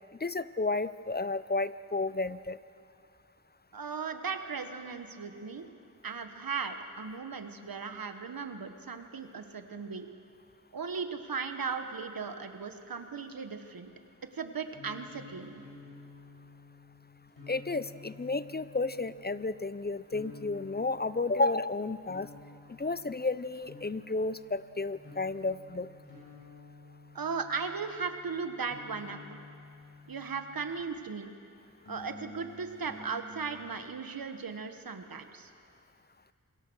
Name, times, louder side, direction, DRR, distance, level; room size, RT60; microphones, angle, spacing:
voice 1, 0.2-2.6 17.5-22.3 22.8-25.9, left 3 dB, 30° left, 15 dB, 0.6 m, -32 dB
voice 2, 3.7-5.7 6.0-10.1 10.7-13.9 14.3-15.6 27.1-29.4 30.1-31.3 31.9-35.5, right 5 dB, 85° right, 7 dB, 1.4 m, -37 dB
sound 1, 14.7-31.0 31.8-33.8, left 3 dB, 85° left, 7.7 m, -52 dB
27.5 x 22.0 x 6.3 m, 2.4 s
cardioid pair, 45°, 34 cm